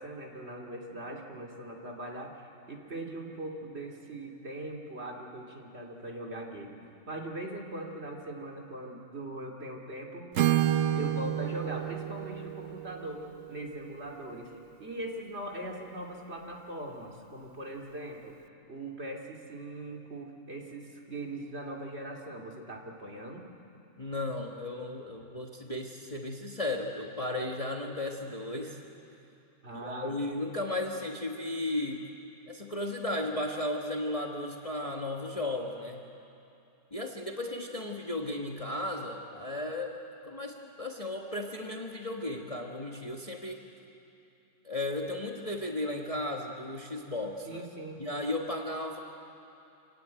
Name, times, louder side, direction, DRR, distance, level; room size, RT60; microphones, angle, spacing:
voice 1, 0.0-6.8 7.1-10.3 10.9-14.5 14.8-18.3 18.7-23.5 29.6-30.1 47.4-48.0, right 1 dB, 45° right, 0 dB, 2.7 m, -40 dB
Acoustic guitar / Strum, 10.3-14.3, right 12 dB, 60° right, 1.0 m, -30 dB
voice 2, 24.0-28.8 29.7-32.1 32.5-36.0 36.9-40.0 40.2-43.6 44.6-47.7 48.0-49.0, left 1 dB, 25° left, 1 dB, 1.4 m, -35 dB
26.0 x 17.5 x 9.2 m, 2.7 s
omnidirectional pair, 1.6 m